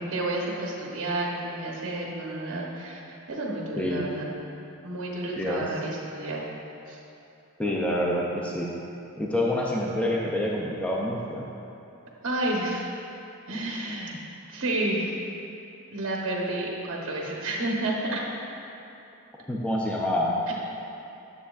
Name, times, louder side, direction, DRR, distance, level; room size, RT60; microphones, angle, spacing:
voice 1, 0.0-4.3 4.8-6.4 6.9-7.0 12.2-12.9 13.5-14.2 14.5-15.1 15.9-18.2 20.5-20.6, right 2 dB, 60° right, -2 dB, 1.0 m, -30 dB
voice 2, 3.8-4.1 5.4-5.6 7.6-8.7 9.2-11.5 19.5-20.3, left 1 dB, 5° left, -3 dB, 0.4 m, -27 dB
9.3 x 7.0 x 2.4 m, 2.9 s
head